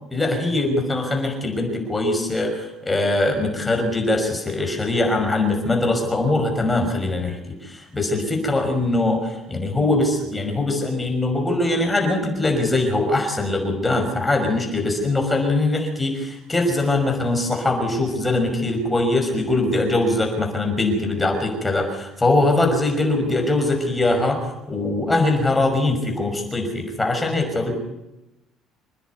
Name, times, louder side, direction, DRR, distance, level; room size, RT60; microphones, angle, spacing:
voice 1, 0.1-27.7, left 2 dB, 10° left, 3 dB, 5.9 m, -22 dB
27.0 x 10.5 x 9.7 m, 0.96 s
cardioid pair, 130°, 0 cm